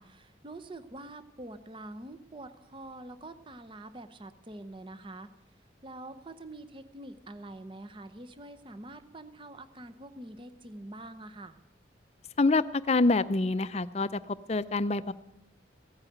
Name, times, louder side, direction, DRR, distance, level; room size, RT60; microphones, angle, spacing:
voice 1, 0.0-5.3 5.8-11.6, right 2 dB, 25° right, 11 dB, 0.8 m, -45 dB
voice 2, 12.4-15.1, left 3 dB, 35° left, 15 dB, 0.5 m, -26 dB
16.0 x 8.9 x 9.3 m, 0.90 s
head